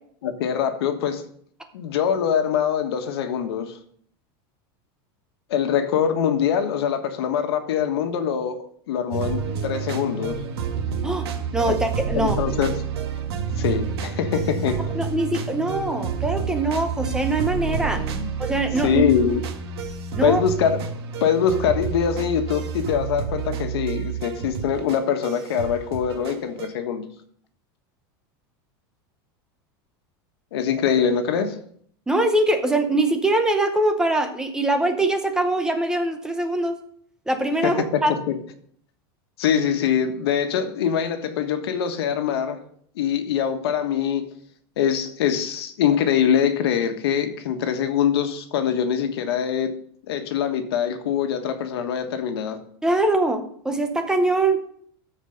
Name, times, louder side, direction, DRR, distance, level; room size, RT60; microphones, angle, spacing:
voice 1, 0.2-1.3 1.7-3.7 5.5-10.4 12.1-12.7 13.6-14.9 17.9-19.4 20.2-20.8 21.2-27.0 30.5-31.6 37.6-38.4 39.4-42.6 43.0-44.3 44.8-49.7 50.1-52.6, left 8 dB, 80° left, 7 dB, 1.5 m, -23 dB
sound 1, 9.1-26.7, right 6 dB, 80° right, 1.6 m, -29 dB
voice 2, 11.5-12.4 15.0-18.0 18.4-19.0 20.1-20.4 32.1-36.8 37.3-38.1 52.8-54.6, right 2 dB, 5° right, 6 dB, 0.7 m, -22 dB
13.5 x 4.9 x 5.1 m, 0.63 s
supercardioid pair, 170°, 13 cm